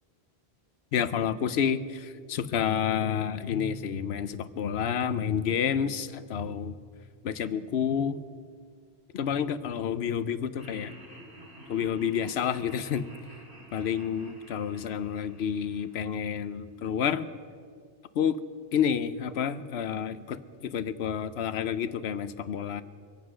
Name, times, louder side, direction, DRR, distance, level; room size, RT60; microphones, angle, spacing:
voice 1, 0.9-6.7 7.2-8.2 9.1-10.9 11.7-13.1 13.7-17.3 18.2-18.4 18.7-22.8, left 8 dB, 85° left, 13 dB, 0.9 m, -29 dB
Laughter, 10.6-16.8, equal, 80° right, 3.0 m, -51 dB
24.5 x 8.1 x 6.2 m, 2.1 s
omnidirectional pair, 1.0 m